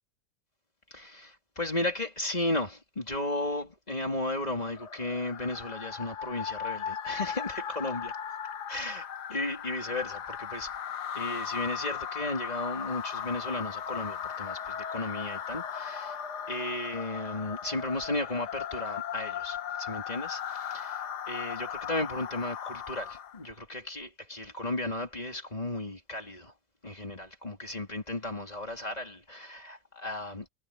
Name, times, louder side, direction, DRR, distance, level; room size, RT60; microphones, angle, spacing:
voice 1, 0.9-8.1 8.7-10.7 11.1-16.2 16.5-26.5 26.8-30.5, left 2 dB, 20° left, 3.5 m, -34 dB
sound 1, 4.5-23.5, left 8 dB, 70° left, 1.7 m, -37 dB
omnidirectional pair, 1.8 m